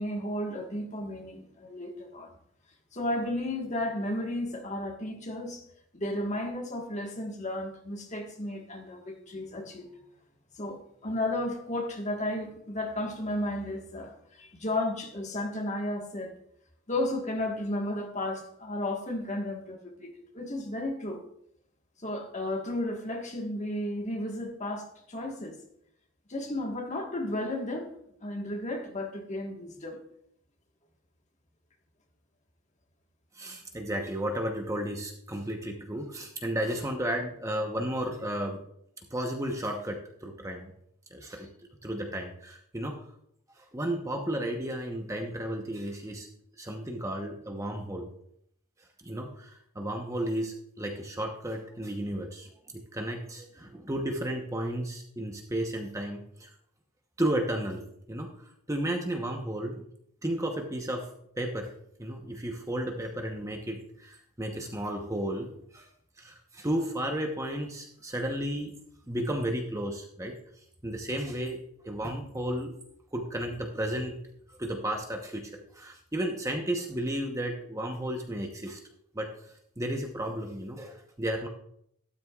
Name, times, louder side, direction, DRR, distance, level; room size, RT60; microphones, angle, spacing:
voice 1, 0.0-2.3 2.9-5.6 5.9-9.9 10.5-16.3 16.9-21.2 22.0-25.6 26.3-27.9 28.2-30.0, left 1 dB, 35° left, 2 dB, 1.5 m, -33 dB
voice 2, 33.4-38.6 39.1-40.7 41.1-41.5 41.8-43.0 43.6-46.3 46.6-48.1 49.0-56.5 57.2-58.3 58.7-59.8 60.2-61.1 61.4-61.7 62.0-65.9 66.2-68.7 69.1-70.4 70.8-72.8 73.1-74.2 74.6-78.8 79.1-79.3 79.8-81.5, right 1 dB, 15° right, 2 dB, 0.9 m, -33 dB
13.0 x 12.5 x 2.4 m, 0.70 s
head